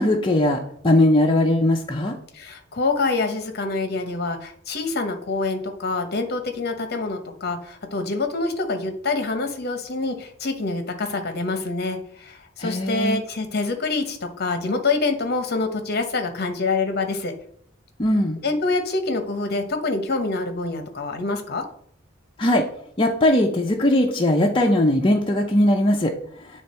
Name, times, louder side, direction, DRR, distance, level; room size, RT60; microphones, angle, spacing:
voice 1, 0.0-2.2 12.6-13.2 18.0-18.4 22.4-22.6 23.0-26.1, left 1 dB, 25° left, 0 dB, 0.6 m, -19 dB
voice 2, 2.3-17.3 18.4-21.6, left 3 dB, 55° left, 7 dB, 1.0 m, -26 dB
9.4 x 3.4 x 4.3 m, 0.65 s
head